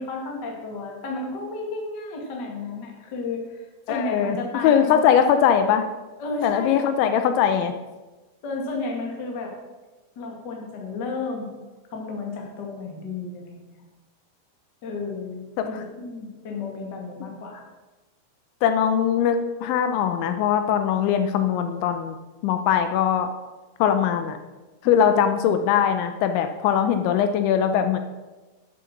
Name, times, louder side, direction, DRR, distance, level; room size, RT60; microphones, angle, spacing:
voice 1, 0.0-5.3 6.2-6.9 8.4-9.5 10.1-11.5 11.9-13.8 14.8-17.6 24.8-24.9, left 3 dB, 50° left, 0 dB, 1.2 m, -32 dB
voice 2, 3.9-4.4 4.6-5.9 6.4-7.7 15.6-15.7 17.2-17.3 18.6-22.2 22.4-23.3 23.8-24.4 24.9-28.0, left 8 dB, 85° left, 8 dB, 2.9 m, -21 dB
10.5 x 7.8 x 6.5 m, 1.2 s
omnidirectional pair, 5.6 m